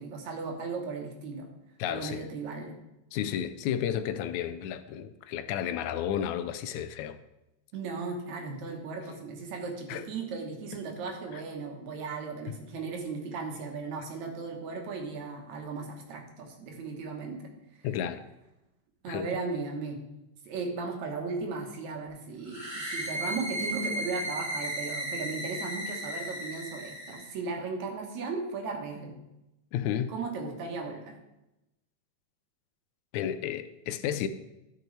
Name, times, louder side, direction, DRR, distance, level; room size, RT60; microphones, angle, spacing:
voice 1, 0.0-1.5 1.8-2.8 7.7-17.5 17.8-17.9 19.0-20.0 20.5-29.2 30.1-31.2, right 4 dB, 70° right, 2.5 m, -36 dB
voice 2, 1.8-2.3 3.1-7.2 9.9-10.0 17.8-18.2 19.1-19.3 29.7-30.1 33.1-34.3, left 10 dB, 80° left, 1.9 m, -32 dB
sound 1, 22.5-27.3, right 1 dB, 30° right, 0.9 m, -35 dB
13.0 x 6.0 x 3.2 m
omnidirectional pair, 3.4 m